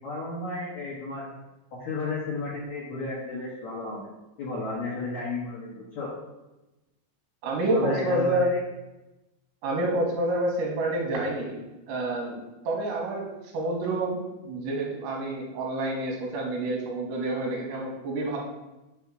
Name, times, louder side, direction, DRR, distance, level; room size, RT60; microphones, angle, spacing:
voice 1, 0.0-1.3 1.8-4.1 4.4-6.1 7.7-8.5, left 2 dB, 80° left, -7 dB, 1.6 m, -33 dB
voice 2, 7.4-8.5 9.6-11.6 11.9-13.3 13.5-18.4, right 1 dB, 75° right, -1 dB, 3.3 m, -28 dB
7.0 x 3.6 x 6.0 m, 1.0 s
omnidirectional pair, 5.7 m